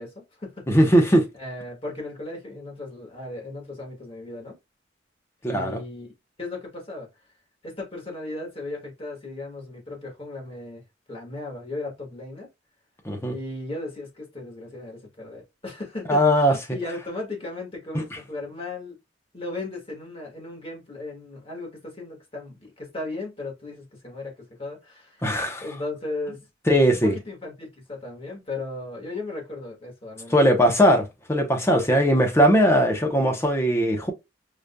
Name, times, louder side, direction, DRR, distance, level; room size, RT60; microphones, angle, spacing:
voice 1, 0.0-0.7 1.4-4.6 5.4-6.1 6.4-7.1 7.6-10.8 11.1-12.5 13.3-19.0 19.3-25.3 25.6-26.4 26.9-30.7, left 2 dB, 30° left, 1.6 m, -36 dB
voice 2, 0.7-1.3 5.4-5.8 13.0-13.3 16.1-16.5 17.9-18.0 25.2-25.6 26.7-27.2 30.3-34.1, equal, 15° left, 0.8 m, -19 dB
4.9 x 2.6 x 2.2 m
head